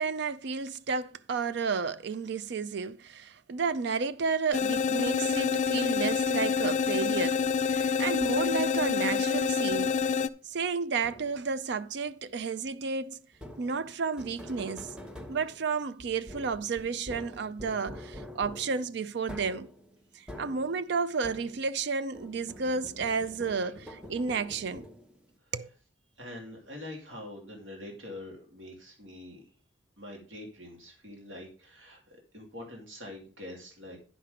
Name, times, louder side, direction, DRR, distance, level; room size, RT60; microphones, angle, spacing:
voice 1, 0.0-10.0 10.5-13.2 13.6-14.9 15.3-19.7 20.1-24.9 25.5-25.7, right 5 dB, 65° right, 0.5 m, -32 dB
sound 1, 4.5-10.3, left 6 dB, 40° left, 0.4 m, -27 dB
sound 2, 8.2-8.7 9.7-10.2 11.0-11.6 13.3-21.9 22.1-25.3, left 1 dB, 5° right, 0.9 m, -46 dB
voice 2, 26.2-29.4 30.0-34.0, left 1 dB, 80° right, 2.7 m, -45 dB
10.0 x 5.9 x 5.0 m
head